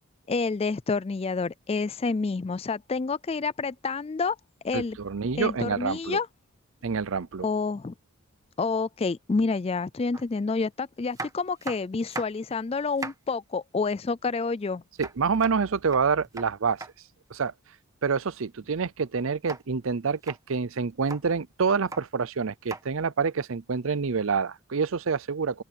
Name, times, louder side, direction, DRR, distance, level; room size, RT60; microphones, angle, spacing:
voice 1, 0.3-4.4 4.6-5.0 5.4-6.3 7.4-7.9 8.6-14.8, left 4 dB, 25° left, 0.3 m, -28 dB
voice 2, 4.7-6.2 6.8-7.5 15.0-16.8 17.3-17.5 18.0-25.6, right 5 dB, 65° right, 0.6 m, -27 dB
sound 1, 10.1-10.3 11.1-12.5 12.8-13.3 15.0-16.9 19.5-19.6 20.1-20.4 20.9-21.2 21.7-22.0 22.7-22.8 24.1-24.2, right 3 dB, 15° right, 1.5 m, -38 dB
open air
head